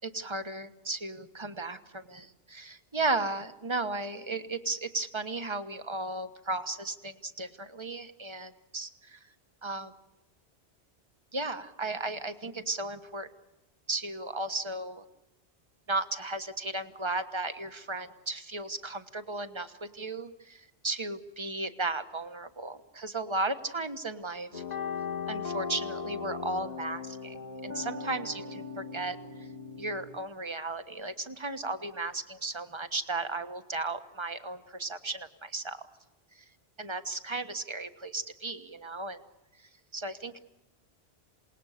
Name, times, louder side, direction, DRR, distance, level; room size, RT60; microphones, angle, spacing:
voice 1, 0.0-9.2 9.6-9.9 11.3-13.3 13.9-15.0 15.9-24.6 25.3-27.4 27.6-29.5 29.8-35.8 36.3-36.4 36.8-39.2 39.6-40.4, right 2 dB, 25° right, 9 dB, 1.4 m, -35 dB
sound 1, 24.5-30.2, left 5 dB, 40° left, 2.0 m, -38 dB
28.0 x 20.0 x 6.6 m, 0.99 s
omnidirectional pair, 1.1 m